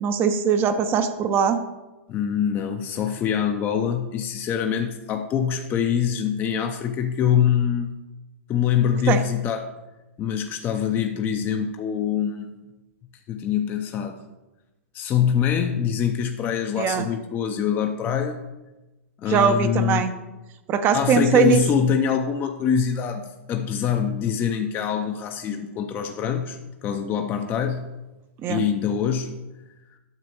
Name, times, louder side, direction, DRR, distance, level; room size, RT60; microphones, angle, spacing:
voice 1, 0.0-1.6 9.1-9.2 16.8-17.0 19.3-20.1 20.7-21.6 28.4-28.6, right 6 dB, 30° right, 8 dB, 0.6 m, -20 dB
voice 2, 2.1-7.9 8.5-9.7 10.2-12.5 13.3-14.2 14.9-18.4 19.2-20.0 20.9-27.9 28.5-29.4, left 8 dB, 25° left, 5 dB, 0.6 m, -24 dB
9.5 x 6.8 x 3.0 m, 1.1 s
hypercardioid pair, 110°, 7 cm